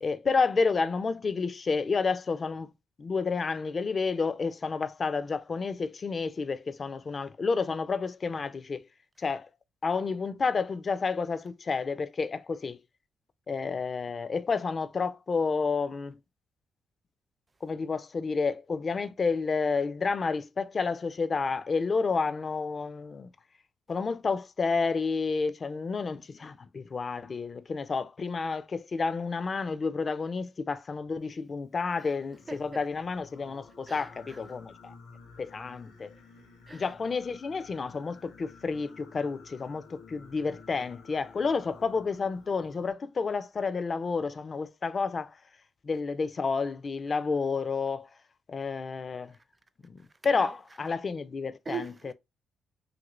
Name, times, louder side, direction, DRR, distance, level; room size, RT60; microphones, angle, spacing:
voice 1, 0.0-2.7 3.0-8.8 9.2-9.5 9.8-12.8 13.5-16.2 17.6-23.3 23.9-34.9 35.4-36.1 36.7-45.4 45.8-48.1 48.5-49.3 49.8-51.9, left 4 dB, 35° left, 0.3 m, -30 dB
Singing, 32.2-42.9, left 4 dB, 90° left, 0.9 m, -53 dB
voice 2, 32.5-32.8 33.9-34.4 36.7-36.9 50.3-50.5 51.7-52.1, right 5 dB, 25° right, 0.5 m, -40 dB
2.8 x 2.5 x 3.0 m
cardioid pair, 90°, 0 cm